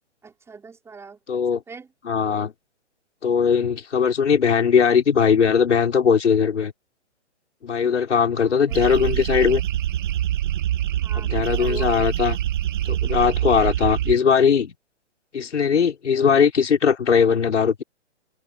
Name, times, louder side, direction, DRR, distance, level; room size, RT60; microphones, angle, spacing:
voice 1, 0.2-1.9 8.3-8.8 11.0-11.9, right 5 dB, 5° right, 5.6 m, -41 dB
voice 2, 1.3-1.6 2.0-2.5 3.2-6.7 7.6-9.6 11.1-12.4 12.9-14.7 15.3-17.8, left 6 dB, 75° left, 6.0 m, -19 dB
sound 1, 8.7-14.2, right 12 dB, 45° right, 1.9 m, -25 dB
hypercardioid pair, 150°, 35 cm